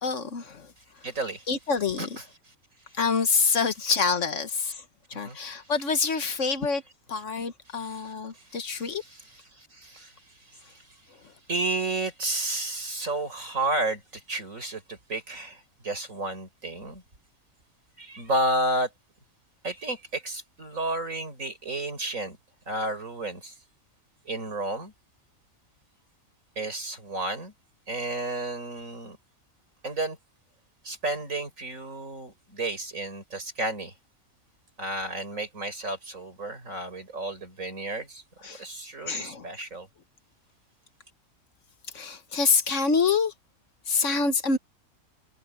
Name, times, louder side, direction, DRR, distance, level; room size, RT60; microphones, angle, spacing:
voice 1, 0.0-1.0 1.5-2.2 2.9-6.8 7.1-9.0 11.2-11.3 38.4-38.6 39.1-39.5 41.9-43.3 43.9-44.6, left 5 dB, 60° left, 1.5 m, -27 dB
voice 2, 0.8-2.5 3.0-3.3 3.6-3.9 5.1-6.2 7.2-7.3 7.9-8.0 8.3-11.0 11.5-17.0 18.0-18.9 19.6-22.4 22.7-23.6 24.3-24.9 26.6-27.5 27.9-29.2 29.8-30.2 30.8-33.9 34.8-38.2 38.6-39.9, right 2 dB, 65° right, 5.6 m, -32 dB
omnidirectional pair, 1.5 m